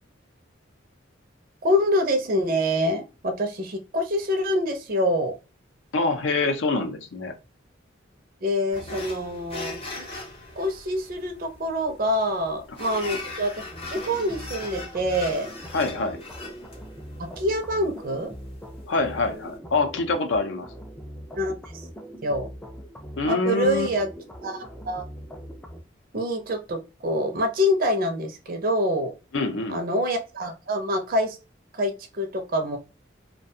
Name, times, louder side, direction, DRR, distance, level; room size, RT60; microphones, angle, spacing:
voice 1, 1.6-5.3 8.4-10.1 10.6-15.5 17.4-18.3 21.4-21.9 22.2-22.5 23.3-24.1 24.4-24.6 24.8-25.0 26.1-29.1 29.7-31.4 31.7-32.8, equal, 45° right, 0.5 m, -26 dB
voice 2, 5.9-7.3 15.7-16.2 18.9-20.7 23.2-23.9 29.3-29.8, left 3 dB, 70° left, 0.5 m, -25 dB
sound 1, 8.7-19.6, left 2 dB, 30° left, 0.7 m, -40 dB
sound 2, 13.7-25.8, equal, 5° left, 0.3 m, -41 dB
2.4 x 2.2 x 2.6 m
head